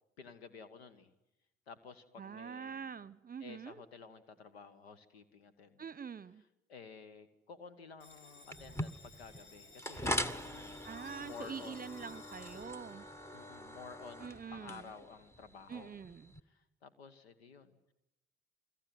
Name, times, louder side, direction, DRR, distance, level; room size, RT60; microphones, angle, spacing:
voice 1, 0.2-1.1 1.7-2.9 3.4-5.9 6.7-10.8 11.2-11.8 13.3-15.9 16.5-17.8, left 5 dB, 90° left, 1.5 m, -53 dB
voice 2, 2.2-3.8 5.8-6.4 10.8-13.1 14.2-14.9 15.7-16.3, right 6 dB, 30° right, 1.0 m, -45 dB
Bell, 8.0-15.0, left 3 dB, 35° left, 6.7 m, -58 dB
sound 1, 8.5-16.4, equal, 10° left, 1.4 m, -42 dB
28.0 x 22.0 x 9.5 m
hypercardioid pair, 55°, 30 cm